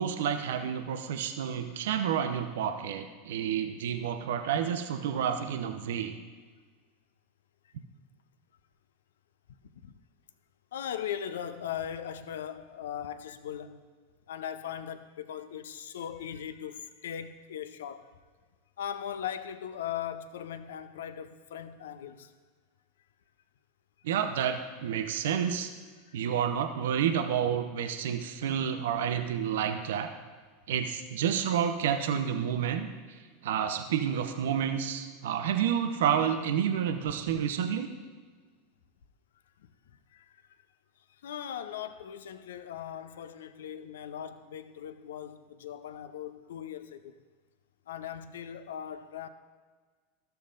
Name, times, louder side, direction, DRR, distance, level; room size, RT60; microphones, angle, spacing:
voice 1, 0.0-6.1 24.0-25.7 26.1-30.1 30.7-37.9, right 8 dB, 65° right, 0.7 m, -30 dB
voice 2, 10.7-13.8 14.3-18.1 18.8-22.3 26.1-26.2 37.3-37.5 40.1-40.4 41.2-47.1 47.9-49.3, left 9 dB, 70° left, 0.5 m, -39 dB
14.0 x 6.7 x 2.5 m
figure-of-eight pair, 85°, 0 cm